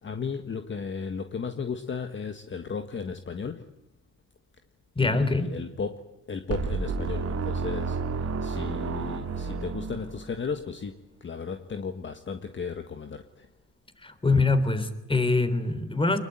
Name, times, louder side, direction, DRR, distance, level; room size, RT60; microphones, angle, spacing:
voice 1, 0.0-3.7 5.0-6.0 6.3-13.5, left 5 dB, 40° left, 7 dB, 1.7 m, -35 dB
voice 2, 5.0-5.6 14.0-16.2, left 3 dB, 15° left, 11 dB, 3.5 m, -24 dB
sound 1, 6.5-10.5, right 4 dB, 55° right, 2.2 m, -31 dB
24.5 x 21.5 x 9.4 m, 0.92 s
cardioid pair, 90°, 30 cm